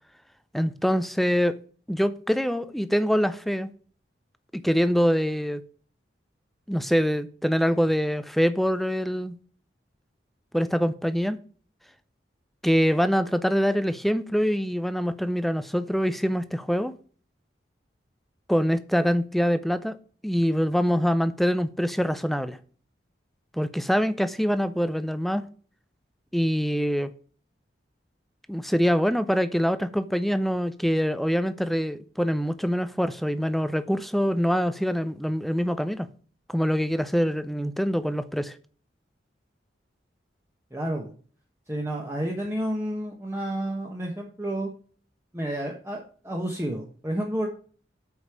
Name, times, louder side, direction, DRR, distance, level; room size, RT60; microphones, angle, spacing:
voice 1, 0.5-1.6 1.9-3.7 4.5-5.6 6.7-9.4 10.5-11.4 12.6-16.9 18.5-20.0 20.2-22.6 23.5-25.5 26.3-27.1 28.5-36.1 36.5-38.6, equal, ahead, 0.5 m, -24 dB
voice 2, 40.7-41.1 41.7-44.7 45.3-47.5, right 1 dB, 15° right, 1.1 m, -30 dB
8.1 x 5.2 x 6.1 m
head